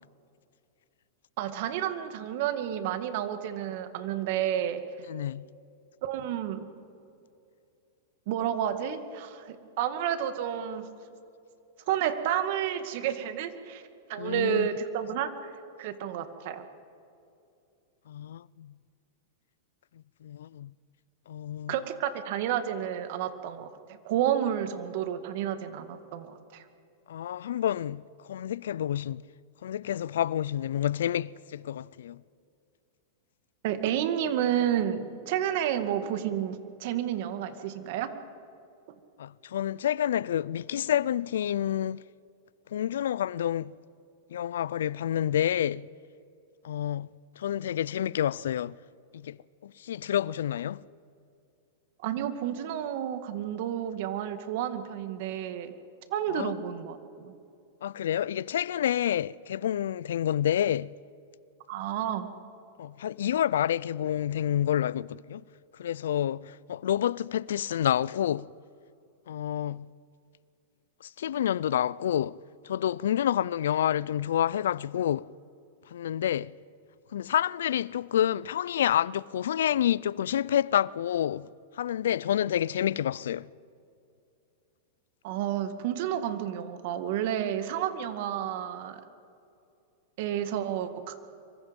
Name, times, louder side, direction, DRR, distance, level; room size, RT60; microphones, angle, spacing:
voice 1, 1.4-4.8 6.0-6.7 8.3-10.9 11.9-13.8 14.1-15.5 15.8-16.6 21.7-26.6 33.6-38.1 52.0-55.7 56.1-57.3 61.7-62.3 85.2-89.0 90.2-91.2, right 10 dB, 60° right, 2.1 m, -30 dB
voice 2, 5.1-5.5 14.2-14.7 18.1-18.7 20.2-20.7 21.3-21.7 27.1-28.0 28.3-29.2 29.6-32.2 39.2-42.0 42.7-43.7 44.3-45.9 46.6-47.1 47.4-48.7 49.1-49.4 49.6-50.8 56.3-56.5 57.8-60.9 62.8-65.4 65.8-68.5 69.3-69.9 71.2-72.4 72.6-75.3 75.9-76.5 77.1-81.5 81.8-83.5, left 10 dB, 85° left, 0.4 m, -28 dB
26.0 x 24.0 x 5.4 m
hypercardioid pair, 130°, 0 cm